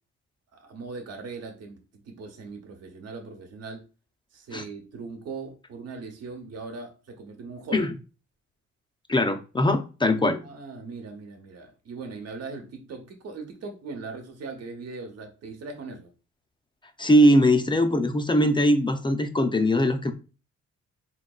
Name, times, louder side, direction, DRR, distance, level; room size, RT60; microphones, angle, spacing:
voice 1, 0.5-3.8 4.3-7.9 10.4-16.1, right 4 dB, 55° right, 0.9 m, -39 dB
voice 2, 9.1-10.4 17.0-20.1, equal, 15° left, 0.4 m, -21 dB
3.8 x 2.7 x 2.3 m
cardioid pair, 90°, 30 cm